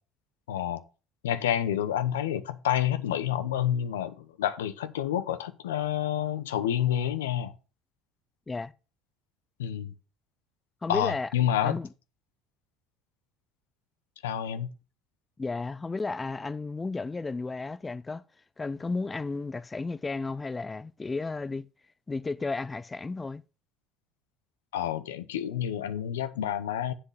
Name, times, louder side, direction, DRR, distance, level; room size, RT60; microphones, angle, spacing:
voice 1, 0.5-0.8 1.2-7.5 9.6-9.9 10.9-11.8 14.2-14.7 24.7-26.9, left 10 dB, 90° left, 0.8 m, -29 dB
voice 2, 10.8-11.3 11.6-11.9 15.4-18.2 18.6-21.7 22.1-23.4, left 3 dB, 20° left, 0.5 m, -33 dB
7.7 x 6.6 x 5.5 m
hypercardioid pair, 70°, 0 cm